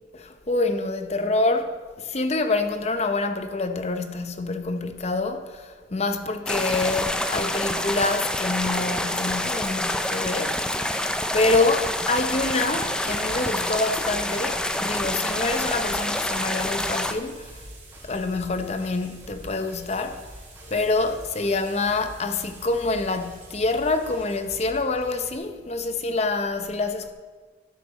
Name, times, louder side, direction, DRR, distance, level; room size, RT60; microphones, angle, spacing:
voice 1, 0.1-10.6 10.9-17.6 18.0-20.3 20.6-27.1, left 3 dB, 35° left, 0.7 m, -26 dB
sound 1, 6.5-17.1, left 1 dB, 5° left, 0.4 m, -27 dB
sound 2, 7.4-24.4, right 5 dB, 40° right, 2.5 m, -51 dB
sound 3, 11.3-25.4, equal, 15° right, 2.0 m, -47 dB
11.0 x 7.8 x 5.2 m
head